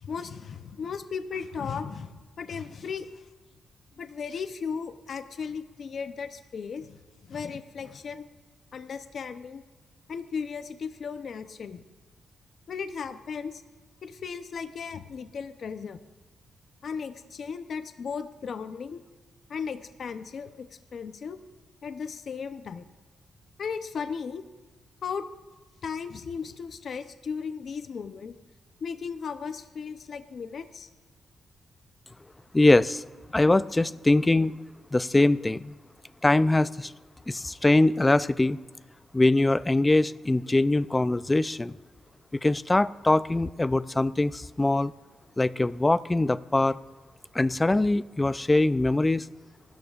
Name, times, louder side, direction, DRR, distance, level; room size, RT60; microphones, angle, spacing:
voice 1, 0.0-3.2 4.0-7.0 7.3-8.2 8.7-9.6 10.1-11.8 12.7-13.6 14.0-16.0 16.8-19.0 19.5-21.4 21.8-22.8 23.6-24.4 25.0-25.3 25.8-28.4 28.8-30.9, left 6 dB, 60° left, 10 dB, 0.7 m, -36 dB
voice 2, 32.5-33.0 33.3-34.5 34.9-35.7 36.2-36.9 37.3-38.6 39.1-41.8 42.3-44.9 45.4-46.8 47.3-49.3, left 2 dB, 15° left, 16 dB, 0.4 m, -22 dB
26.5 x 13.5 x 2.5 m, 1.2 s
cardioid pair, 105°, 0 cm